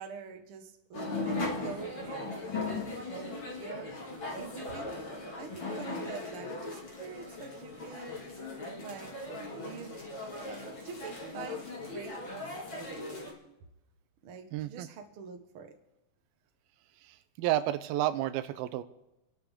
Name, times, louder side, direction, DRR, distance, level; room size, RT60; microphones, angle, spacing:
voice 1, 0.0-2.6 3.1-5.0 5.4-8.3 8.8-10.2 10.4-11.6 11.9-13.3 14.2-15.8, right 6 dB, 60° right, 5 dB, 1.5 m, -46 dB
sound 1, 0.9-13.3, left 2 dB, 35° left, 2.8 m, -38 dB
voice 2, 14.5-14.9 17.4-18.8, right 13 dB, 90° right, 12 dB, 2.6 m, -30 dB
29.5 x 11.5 x 3.7 m, 0.90 s
omnidirectional pair, 4.2 m